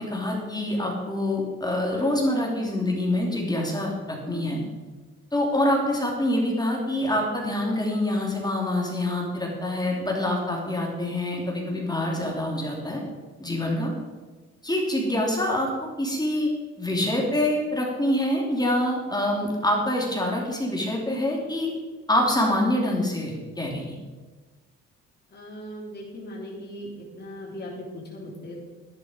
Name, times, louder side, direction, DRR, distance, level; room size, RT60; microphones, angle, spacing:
voice 1, 0.0-4.6 5.3-13.0 13.4-13.9 14.6-16.5 16.8-21.7 22.1-23.9, left 1 dB, 15° left, -2 dB, 3.2 m, -25 dB
voice 2, 25.3-28.6, equal, 35° left, -4 dB, 3.3 m, -38 dB
11.5 x 10.5 x 5.2 m, 1.3 s
cardioid pair, 90°, 30 cm